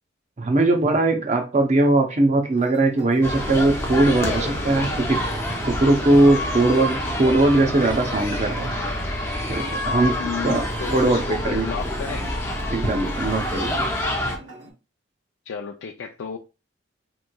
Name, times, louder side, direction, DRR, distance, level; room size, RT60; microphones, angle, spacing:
voice 1, 0.4-5.2 5.6-8.7 9.5-10.2 10.4-11.6 12.7-13.9, right 2 dB, 35° right, 0.6 m, -20 dB
sound 1, 2.5-14.7, right 1 dB, 70° right, 1.0 m, -44 dB
sound 2, 3.2-14.4, left 1 dB, 15° left, 0.6 m, -27 dB
voice 2, 10.2-12.3 15.5-16.4, left 6 dB, 75° left, 0.4 m, -32 dB
3.5 x 3.0 x 2.2 m
head